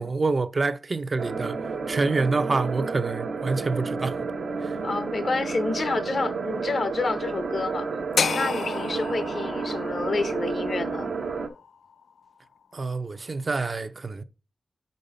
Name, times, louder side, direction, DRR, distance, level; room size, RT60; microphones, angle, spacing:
voice 1, 0.0-1.6 1.9-4.3 4.6-4.8 12.7-14.2, right 3 dB, 45° right, 0.5 m, -27 dB
sound 1, 1.2-11.5, right 4 dB, 80° right, 0.8 m, -31 dB
voice 2, 4.8-7.9 8.3-11.1, left 3 dB, 60° left, 0.7 m, -29 dB
sound 2, 8.2-12.3, left 6 dB, 85° left, 0.3 m, -31 dB
5.3 x 4.7 x 5.4 m
cardioid pair, 70°, 0 cm